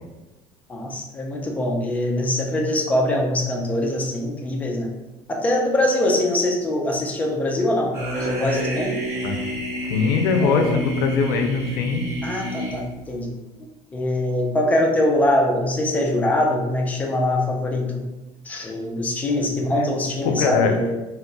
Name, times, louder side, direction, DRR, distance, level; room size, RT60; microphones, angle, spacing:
voice 1, 0.7-4.9 5.3-9.0 10.4-10.7 12.2-13.4 13.9-18.0 18.5-21.0, left 1 dB, 15° left, 0 dB, 0.3 m, -23 dB
sound 1, 7.9-13.2, equal, 25° right, 1.0 m, -30 dB
voice 2, 9.8-12.0 20.2-20.8, left 5 dB, 85° left, 4 dB, 0.4 m, -21 dB
2.2 x 2.0 x 3.8 m, 1.1 s
cardioid pair, 165°, 11 cm